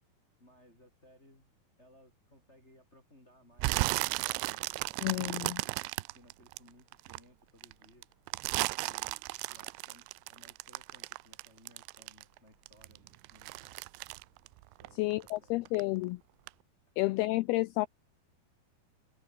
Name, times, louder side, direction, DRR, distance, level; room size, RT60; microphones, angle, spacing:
voice 1, 0.4-1.5 1.8-8.1 8.8-13.8 14.8-15.5 16.9-17.0, left 1 dB, 15° left, 7.8 m, -62 dB
sound 1, 3.6-7.2 7.6-12.4 12.7-15.4 15.7-16.1 16.5-16.6, right 25 dB, 90° right, 2.8 m, -35 dB
voice 2, 5.0-5.6 15.0-16.2 17.0-17.9, left 20 dB, 85° left, 2.2 m, -30 dB
omnidirectional pair, 5.1 m